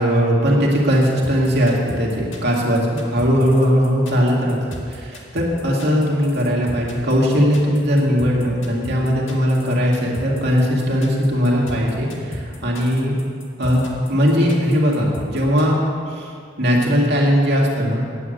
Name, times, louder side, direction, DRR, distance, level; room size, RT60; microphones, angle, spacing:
voice 1, 0.0-4.6 4.9-13.1 13.6-15.8 16.1-18.0, equal, 55° right, -3 dB, 2.2 m, -19 dB
sound 1, 1.0-15.6, left 1 dB, 65° left, 1.8 m, -35 dB
9.7 x 8.5 x 7.9 m, 2.2 s
head